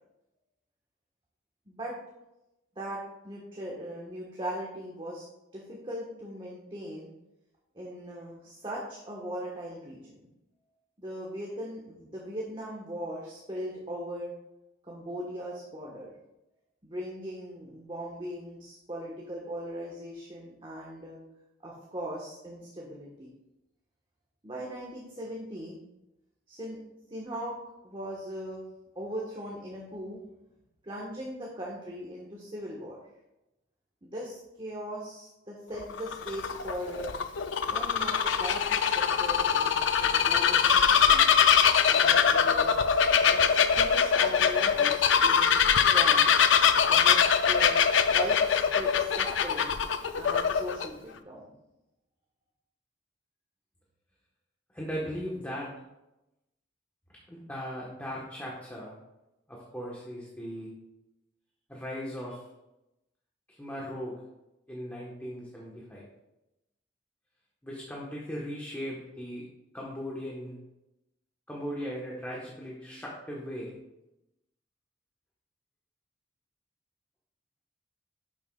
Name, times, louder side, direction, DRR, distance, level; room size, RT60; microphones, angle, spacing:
voice 1, 1.7-2.0 2.7-5.2 5.5-7.1 7.7-10.0 11.0-14.3 14.8-16.1 16.8-21.2 21.6-23.3 24.4-25.8 26.5-26.8 27.1-27.6 27.8-28.6 28.9-30.2 30.8-33.0 34.0-37.2 37.7-41.3 41.9-42.7 43.3-46.3 46.8-49.7 50.1-51.5, equal, 25° right, -4 dB, 1.4 m, -39 dB
Bird vocalization bird call bird song, 35.8-50.9, left 7 dB, 75° left, 0.5 m, -23 dB
voice 2, 54.7-55.7 57.3-58.9 59.5-60.7 61.7-62.4 63.6-64.1 64.7-66.0 67.6-69.4 69.7-70.6 71.5-73.8, equal, 10° left, -4 dB, 1.3 m, -38 dB
11.0 x 7.3 x 2.4 m, 0.93 s
head